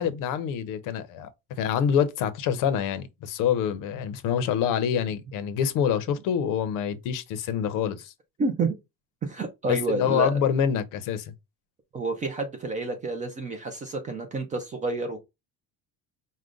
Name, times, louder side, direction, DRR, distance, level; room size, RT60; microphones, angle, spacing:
voice 1, 0.0-8.1 9.7-11.3, left 8 dB, 55° left, 0.6 m, -26 dB
voice 2, 8.4-8.7 9.2-10.4 11.9-15.2, right 3 dB, 20° right, 0.3 m, -29 dB
4.9 x 2.1 x 3.7 m
cardioid pair, 180°, 39 cm